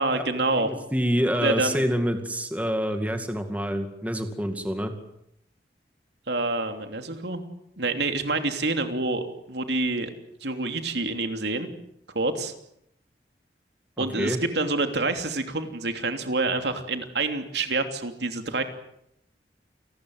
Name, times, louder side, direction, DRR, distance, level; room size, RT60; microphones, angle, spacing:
voice 1, 0.0-0.7 1.4-1.8 6.3-7.4 7.8-10.1 10.4-11.7 12.1-12.5 14.0-18.6, right 2 dB, 80° right, 6 dB, 3.0 m, -27 dB
voice 2, 0.6-4.9 14.0-14.4, equal, 10° right, 6 dB, 2.3 m, -27 dB
29.0 x 20.5 x 8.0 m, 0.76 s
head